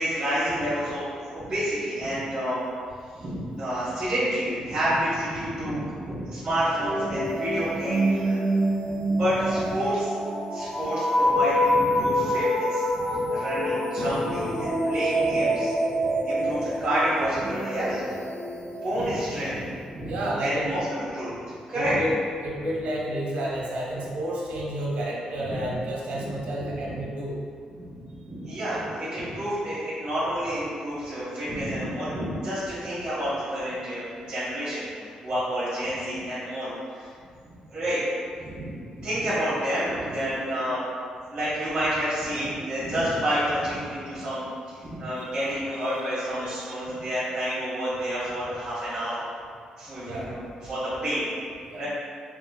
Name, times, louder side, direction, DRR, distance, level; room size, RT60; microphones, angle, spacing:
voice 1, 0.0-2.6 3.1-8.4 9.1-10.1 10.5-15.7 16.0-18.0 18.8-20.1 20.4-22.0 25.5-25.8 26.1-26.3 26.6-26.9 27.8-37.1 37.7-38.0 38.4-40.8 41.3-49.3 49.8-51.3 51.8-51.9, equal, 35° right, -13 dB, 1.4 m, -29 dB
sound 1, 6.8-19.5, equal, 40° left, 1.0 m, -26 dB
voice 2, 20.0-20.7 21.7-22.2 22.4-27.4 42.3-42.5 45.2-46.0 46.4-46.9 50.0-50.4 51.7-51.8, right 1 dB, 85° right, -3 dB, 0.9 m, -31 dB
5.3 x 2.9 x 2.3 m, 2.3 s
cardioid pair, 135°, 2 cm